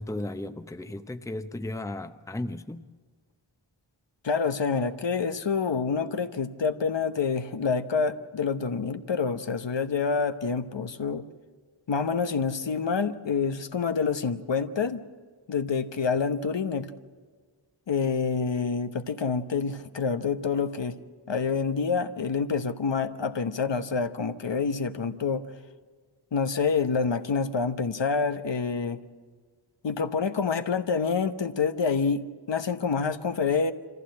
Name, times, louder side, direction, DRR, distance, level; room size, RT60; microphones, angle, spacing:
voice 1, 0.0-2.8, left 1 dB, 5° left, 0.7 m, -35 dB
voice 2, 4.2-11.2 11.9-15.0 15.5-16.9 17.9-21.0 21.3-25.5 26.3-29.0 29.8-33.7, left 5 dB, 65° left, 1.0 m, -27 dB
25.5 x 15.0 x 7.7 m
wide cardioid pair, 65°, 47 cm